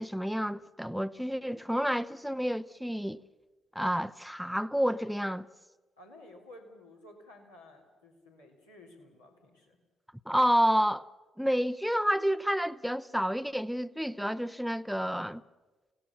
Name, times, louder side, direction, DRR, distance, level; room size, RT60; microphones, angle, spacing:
voice 1, 0.0-3.2 3.7-5.5 10.3-11.1 11.4-15.4, equal, ahead, 0.7 m, -29 dB
voice 2, 6.0-9.8, left 1 dB, 80° left, 3.8 m, -53 dB
29.5 x 17.5 x 7.2 m
figure-of-eight pair, 40°, 0 cm